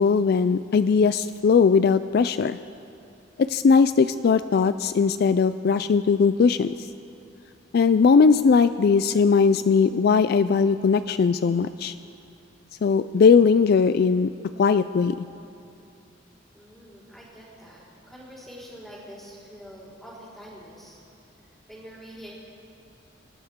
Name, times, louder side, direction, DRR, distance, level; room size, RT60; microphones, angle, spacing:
voice 1, 0.0-2.6 3.4-6.9 7.7-11.9 12.8-14.3 14.6-15.3, left 5 dB, 55° left, 13 dB, 0.3 m, -19 dB
voice 2, 16.5-21.0 21.7-22.3, equal, ahead, -7 dB, 4.3 m, -45 dB
27.5 x 13.0 x 3.7 m, 2.6 s
head